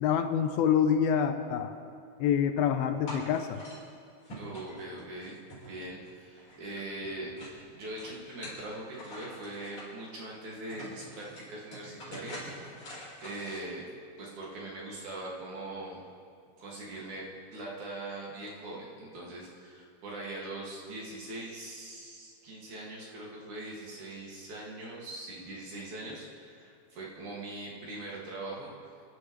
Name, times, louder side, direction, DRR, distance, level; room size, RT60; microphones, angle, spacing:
voice 1, 0.0-1.8 2.2-3.6, left 8 dB, 80° left, 7 dB, 2.5 m, -26 dB
sound 1, 3.1-3.8 4.2-6.1 6.3-7.6 8.0-9.9 10.4-10.5 10.7-13.6, equal, 35° left, 5.3 m, -45 dB
voice 2, 4.4-5.4 5.6-7.3 7.7-12.5 13.2-13.8 14.2-16.0 16.6-17.2 17.5-28.7, right 2 dB, 55° right, -4 dB, 3.5 m, -41 dB
29.0 x 11.5 x 3.3 m, 2.3 s
omnidirectional pair, 4.4 m